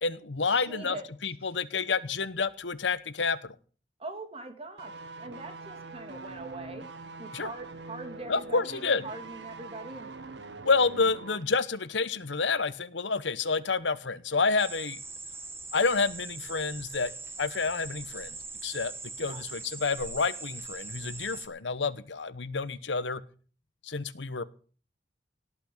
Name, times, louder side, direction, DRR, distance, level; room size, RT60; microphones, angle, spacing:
voice 1, 0.0-1.0 1.2-3.5 7.3-7.5 8.3-9.0 10.6-15.0 15.7-17.1 17.4-18.4 18.6-18.9 19.2-23.2 23.8-24.4, left 4 dB, 85° left, 15 dB, 1.0 m, -29 dB
voice 2, 0.5-1.0 4.0-6.9 7.2-10.1 19.2-19.4, right 2 dB, 35° right, 6 dB, 2.7 m, -42 dB
sound 1, 4.8-11.5 11.7-11.9, right 3 dB, 70° right, 1.5 m, -44 dB
sound 2, 14.6-21.5, right 3 dB, 15° right, 1.4 m, -41 dB
18.0 x 6.1 x 8.7 m, 0.41 s
head